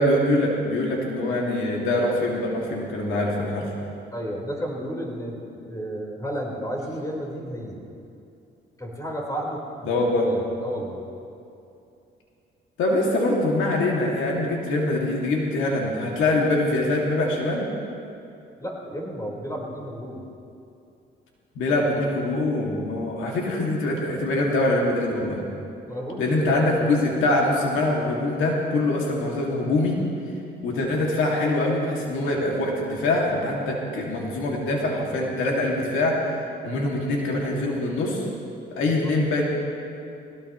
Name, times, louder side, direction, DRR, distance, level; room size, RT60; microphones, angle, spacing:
voice 1, 0.0-3.7 9.9-10.3 12.8-17.7 21.6-25.4 26.2-30.0 30.6-36.2 36.6-38.2 38.7-39.4, left 2 dB, 85° left, -2 dB, 2.3 m, -24 dB
voice 2, 4.1-7.9 8.8-11.0 18.6-20.2 25.9-26.5 36.6-36.8, equal, 15° left, -2 dB, 4.3 m, -32 dB
20.5 x 17.5 x 3.1 m, 2.6 s
cardioid pair, 90°, 20 cm